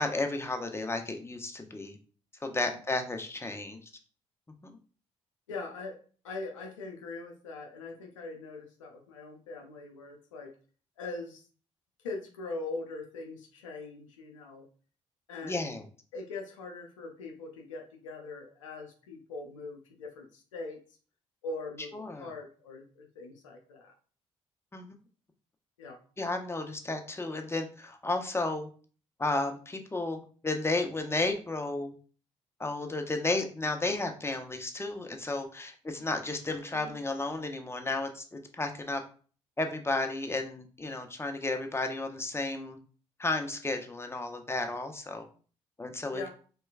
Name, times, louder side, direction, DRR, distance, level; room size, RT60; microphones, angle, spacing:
voice 1, 0.0-2.0 2.4-3.8 4.6-4.7 15.4-15.8 21.9-22.3 24.7-24.9 26.2-28.7 29.2-31.9 32.6-39.0 39.6-42.8 43.2-45.2 45.8-46.2, left 2 dB, 15° left, 5 dB, 0.8 m, -33 dB
voice 2, 5.5-6.0 6.2-10.5 11.0-11.5 12.0-14.6 15.3-15.8 16.1-20.8 21.4-23.9 25.8-26.0 36.7-37.0 46.1-46.3, left 3 dB, 85° left, 2 dB, 0.6 m, -41 dB
4.3 x 3.2 x 2.3 m, 0.40 s
figure-of-eight pair, 45°, 16 cm